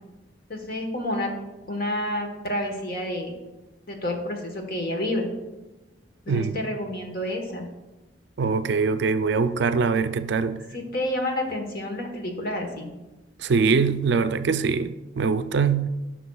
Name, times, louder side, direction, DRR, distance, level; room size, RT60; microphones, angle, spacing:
voice 1, 0.5-1.3 1.7-3.3 3.9-5.3 6.3-7.7 10.7-12.9, left 1 dB, 50° left, 1.2 m, -29 dB
voice 2, 8.4-10.6 13.4-15.9, right 5 dB, 60° right, 0.4 m, -23 dB
13.5 x 6.0 x 2.3 m
head